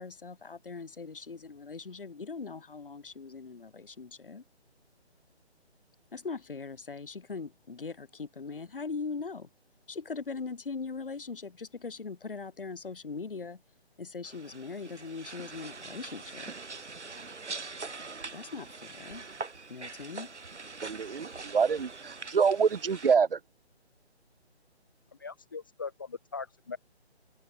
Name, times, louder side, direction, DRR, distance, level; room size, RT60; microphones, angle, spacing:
voice 1, 0.0-4.4 6.1-9.5 9.9-13.6 14.0-16.5 18.3-19.3 19.7-20.3, left 4 dB, 50° left, 6.4 m, -40 dB
sound 1, 14.2-23.2, right 4 dB, 90° right, 6.1 m, -43 dB
voice 2, 20.8-21.3 21.5-23.3, right 6 dB, 55° right, 0.6 m, -25 dB
voice 3, 25.2-26.8, left 5 dB, 20° left, 1.3 m, -40 dB
open air
hypercardioid pair, 180°, 34 cm